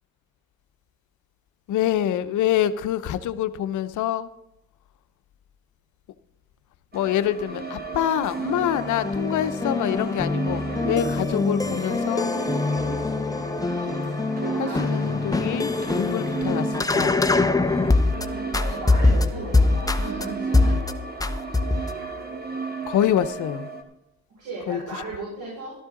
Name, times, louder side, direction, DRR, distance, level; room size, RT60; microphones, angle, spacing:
voice 1, 1.7-4.3 6.9-12.3 14.6-17.2 22.9-23.7 24.7-24.8, left 11 dB, 80° left, 12 dB, 0.8 m, -26 dB
sound 1, 6.9-23.8, right 4 dB, 30° right, 2.0 m, -34 dB
sound 2, 8.5-18.3 18.5-20.3 20.5-20.9 21.2-22.0, left 3 dB, 10° left, 0.8 m, -23 dB
voice 2, 14.4-14.9 18.6-20.7 24.4-25.7, right 2 dB, 70° right, -4 dB, 5.9 m, -35 dB
13.0 x 13.0 x 3.8 m, 0.89 s
cardioid pair, 90°, 30 cm